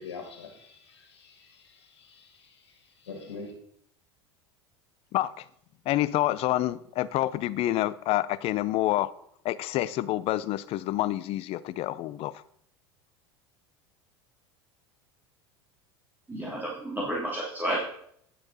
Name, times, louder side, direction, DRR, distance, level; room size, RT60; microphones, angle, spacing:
voice 1, 0.0-3.5, left 4 dB, 80° left, 3 dB, 2.1 m, -45 dB
voice 2, 5.1-5.5 5.9-9.1 9.4-12.4, left 15 dB, 45° left, 17 dB, 0.5 m, -28 dB
voice 3, 16.3-17.8, right 1 dB, 15° right, -6 dB, 2.8 m, -31 dB
10.5 x 6.6 x 4.1 m, 0.68 s
hypercardioid pair, 80°, 14 cm